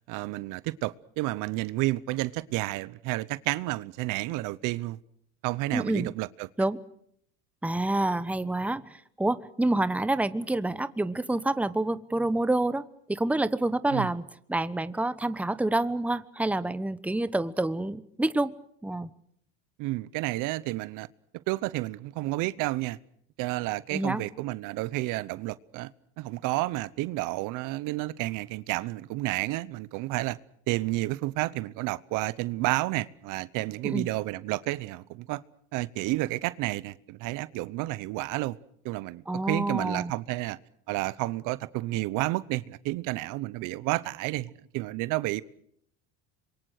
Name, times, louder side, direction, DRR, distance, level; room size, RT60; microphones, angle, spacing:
voice 1, 0.1-5.0 5.4-6.5 13.9-14.1 19.8-21.1 21.5-23.0 23.4-25.9 26.2-30.4 30.7-35.4 35.7-38.6 38.8-40.6 40.9-45.4, right 19 dB, 65° right, 0.9 m, -31 dB
voice 2, 5.7-6.1 6.6-6.8 7.6-14.2 14.5-18.5 18.8-19.1 23.9-24.2 33.8-34.1 39.3-40.1, right 2 dB, 5° right, 1.1 m, -28 dB
26.5 x 23.5 x 6.5 m
supercardioid pair, 105°, 34 cm